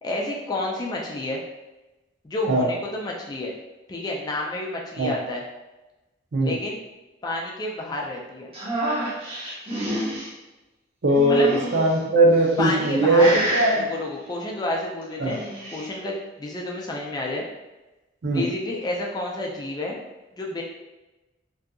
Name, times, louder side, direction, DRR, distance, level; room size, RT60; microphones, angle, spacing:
voice 1, 0.0-1.4 2.2-3.5 3.9-5.4 6.4-6.8 7.2-8.5 11.3-11.5 12.6-13.4 13.8-15.4 15.7-17.5 18.3-20.0 20.4-20.6, left 2 dB, 20° left, -2 dB, 0.3 m, -29 dB
sound 1, 8.5-10.3 11.1-11.9 12.6-12.9 13.2-13.8 15.1-15.8, right 1 dB, 30° right, 0.7 m, -28 dB
voice 2, 11.0-13.7 15.2-15.4 18.2-18.5, right 1 dB, 65° right, 0 dB, 0.5 m, -19 dB
2.6 x 2.4 x 2.3 m, 1.1 s
head